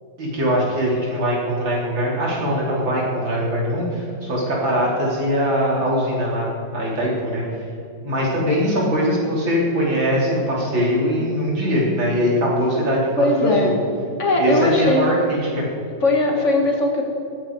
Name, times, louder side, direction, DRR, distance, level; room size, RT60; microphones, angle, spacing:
voice 1, 0.2-7.4 8.0-13.7 14.4-15.7, equal, 80° right, -4 dB, 4.3 m, -21 dB
voice 2, 13.2-13.7 14.2-15.1 16.0-17.0, left 2 dB, 40° left, 1 dB, 2.2 m, -19 dB
19.0 x 15.5 x 4.8 m, 2.6 s
omnidirectional pair, 2.1 m